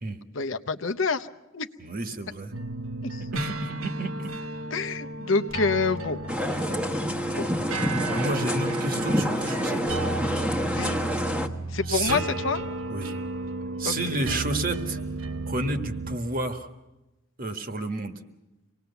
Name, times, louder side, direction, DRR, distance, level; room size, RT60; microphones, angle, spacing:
voice 1, 0.3-1.3 1.5-1.7 3.1-3.2 4.7-6.2 7.4-7.5 10.7-11.0 11.7-12.6 13.8-13.9, left 4 dB, 65° left, 9 dB, 0.8 m, -27 dB
voice 2, 1.8-2.5 3.3-4.3 8.1-9.8 11.9-12.2 12.9-13.2 13.8-15.0 15.4-16.7 17.4-18.1, right 2 dB, 45° right, 8 dB, 1.6 m, -30 dB
sound 1, 2.5-16.2, right 2 dB, 85° right, 1.0 m, -34 dB
sound 2, 6.3-11.5, equal, 5° right, 1.2 m, -27 dB
25.5 x 19.0 x 7.0 m, 1.0 s
head